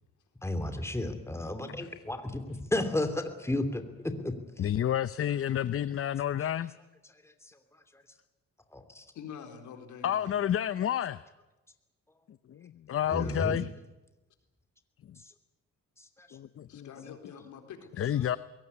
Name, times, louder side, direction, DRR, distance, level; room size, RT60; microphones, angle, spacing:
voice 1, 0.4-3.8 4.2-4.6 8.7-9.0 13.1-13.6 16.2-16.3, left 1 dB, 10° left, 8 dB, 3.0 m, -32 dB
voice 2, 4.6-6.7 10.0-11.2 12.5-13.7 16.3-17.1 18.0-18.4, left 10 dB, 45° left, 15 dB, 0.7 m, -30 dB
voice 3, 9.1-10.4 13.1-13.4 16.7-18.1, left 7 dB, 75° left, 5 dB, 4.1 m, -46 dB
22.0 x 18.0 x 9.7 m, 1.1 s
cardioid pair, 90°, 30 cm